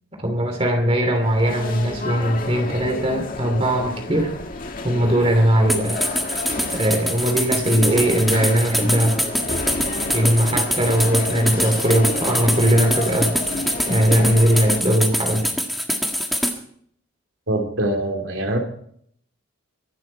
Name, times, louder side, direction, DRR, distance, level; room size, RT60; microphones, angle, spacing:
voice 1, 0.2-4.3 4.8-6.0 6.7-9.2 10.1-13.3 13.9-15.5, equal, 30° right, 4 dB, 2.7 m, -19 dB
sound 1, 1.2-14.8, left 2 dB, 40° left, 1.9 m, -31 dB
sound 2, 5.7-16.6, equal, ahead, 1.6 m, -24 dB
voice 2, 17.5-18.6, right 1 dB, 70° right, 2 dB, 3.4 m, -23 dB
24.5 x 12.0 x 4.4 m, 0.65 s
head